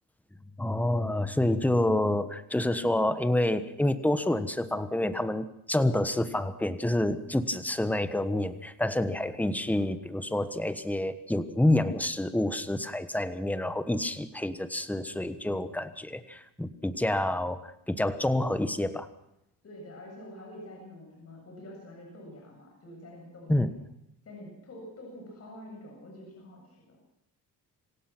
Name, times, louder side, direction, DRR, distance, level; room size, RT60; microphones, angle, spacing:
voice 1, 0.6-19.1 23.5-23.7, left 1 dB, 5° left, 11 dB, 1.2 m, -28 dB
voice 2, 19.6-23.6 24.2-27.0, left 1 dB, 35° left, -1 dB, 7.9 m, -46 dB
26.5 x 16.5 x 6.1 m, 0.80 s
cardioid pair, 120°, 42 cm